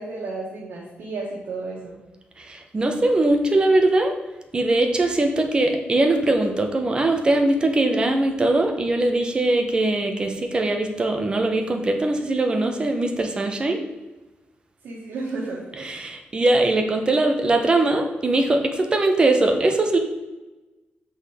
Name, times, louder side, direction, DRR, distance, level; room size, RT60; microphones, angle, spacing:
voice 1, 0.0-2.0 14.8-15.9, right 3 dB, 90° right, -5 dB, 1.7 m, -32 dB
voice 2, 2.4-4.1 4.5-13.8 15.8-20.0, right 2 dB, 25° right, 4 dB, 0.9 m, -21 dB
7.9 x 5.4 x 5.0 m, 1.1 s
wide cardioid pair, 170°, 4 cm